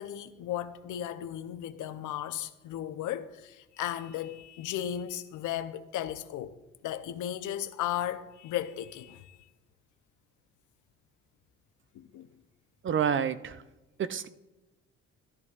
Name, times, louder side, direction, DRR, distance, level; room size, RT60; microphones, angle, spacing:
voice 1, 0.0-6.6 6.8-9.4 11.9-12.3, left 11 dB, 80° left, 0.7 m, -35 dB
voice 2, 12.8-13.6 14.0-14.3, right 8 dB, 40° right, 0.5 m, -28 dB
14.0 x 10.5 x 2.4 m
cardioid pair, 90°, 30 cm